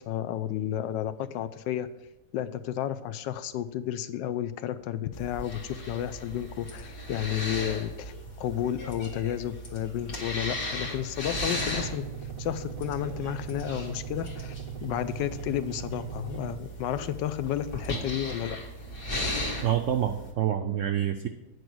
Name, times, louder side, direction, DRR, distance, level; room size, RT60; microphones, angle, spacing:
voice 1, 0.1-1.9 2.3-12.0 12.4-18.6, left 11 dB, 90° left, 12 dB, 1.3 m, -32 dB
sound 1, 5.1-20.3, left 1 dB, 50° left, 1.9 m, -37 dB
sound 2, 11.3-16.6, right 8 dB, 50° right, 0.7 m, -39 dB
voice 2, 19.6-21.3, right 10 dB, 90° right, 7 dB, 0.6 m, -27 dB
9.4 x 4.9 x 6.2 m, 0.93 s
omnidirectional pair, 1.9 m